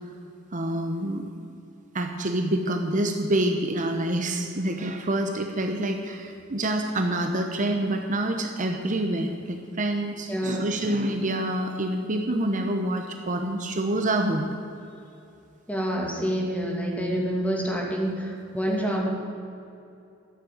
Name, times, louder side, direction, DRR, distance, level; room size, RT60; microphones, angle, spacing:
voice 1, 0.5-1.2 1.9-14.5, right 1 dB, 40° right, 4 dB, 0.9 m, -27 dB
voice 2, 10.3-10.6 15.7-19.1, equal, 5° left, -2 dB, 2.6 m, -27 dB
13.5 x 7.5 x 9.4 m, 2.6 s
head